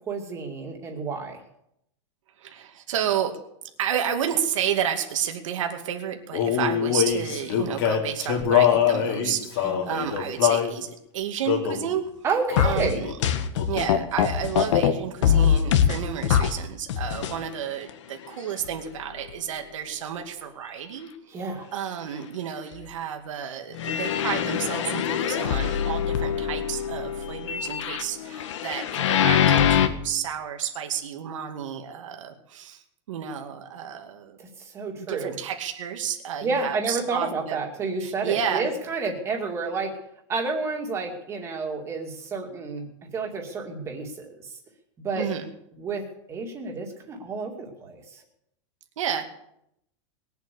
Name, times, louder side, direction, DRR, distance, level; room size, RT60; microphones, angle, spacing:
voice 1, 0.1-1.4 9.6-9.9 12.2-13.0 21.3-21.7 34.4-35.3 36.4-40.0 40.3-42.9 43.1-44.5 45.0-45.3 45.8-48.2, right 4 dB, 15° right, 2 dB, 2.3 m, -30 dB
voice 2, 2.4-3.4 3.8-12.0 12.6-13.1 13.7-21.1 21.7-34.4 35.0-37.6 38.0-38.7 45.2-45.5 49.0-49.2, right 9 dB, 90° right, 4 dB, 2.4 m, -31 dB
Male singing, 6.3-10.7 11.4-11.9 12.5-12.8 13.0-14.0, left 9 dB, 45° left, 3.0 m, -24 dB
sound 1, 12.6-14.9 15.2-16.6 16.9-17.4 17.9-18.0 18.6-18.7 19.3-19.4 23.7-29.9, left 9 dB, 70° left, 1.7 m, -23 dB
21.0 x 8.2 x 8.4 m, 0.77 s
supercardioid pair, 175°, 16 cm